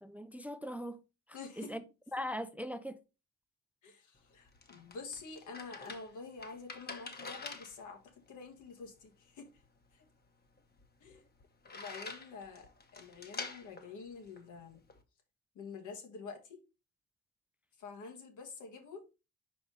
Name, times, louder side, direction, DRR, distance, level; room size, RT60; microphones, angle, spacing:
voice 1, 0.0-1.0 1.6-1.8 2.1-3.0, equal, 5° right, 0.4 m, -40 dB
voice 2, 1.3-1.8 3.8-8.0 8.3-9.5 9.9-10.1 11.0-11.2 11.6-14.8 15.6-16.6 17.8-19.0, left 4 dB, 75° left, 1.7 m, -48 dB
sound 1, 4.2-15.0, left 4 dB, 30° left, 1.1 m, -48 dB
5.0 x 4.9 x 3.9 m
cardioid pair, 90°, 30 cm